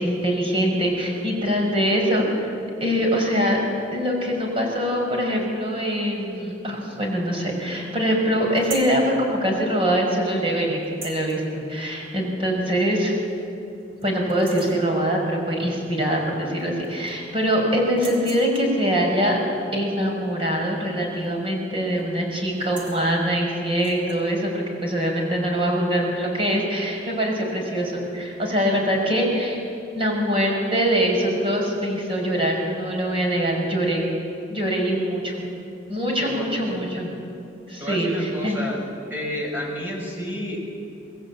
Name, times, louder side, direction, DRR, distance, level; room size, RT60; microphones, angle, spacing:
voice 1, 0.0-2.5 2.8-3.6 3.9-13.1 14.0-19.4 19.7-29.6 29.9-34.1 34.5-35.4 35.9-37.1 37.7-38.6, equal, 30° right, 0 dB, 6.0 m, -23 dB
sound 1, 8.6-9.0 10.8-11.4 12.7-12.8 13.3-13.4 13.8-14.0 14.3-14.8 16.2-16.3 16.6-17.3 17.9-18.8 21.1-21.5 21.7-22.0 22.5-23.0 23.7-24.2, right 3 dB, 70° right, 5.2 m, -40 dB
voice 2, 36.2-36.8 37.8-38.8 39.1-40.6, equal, 10° right, -1 dB, 6.2 m, -30 dB
25.5 x 20.0 x 8.7 m, 2.8 s
head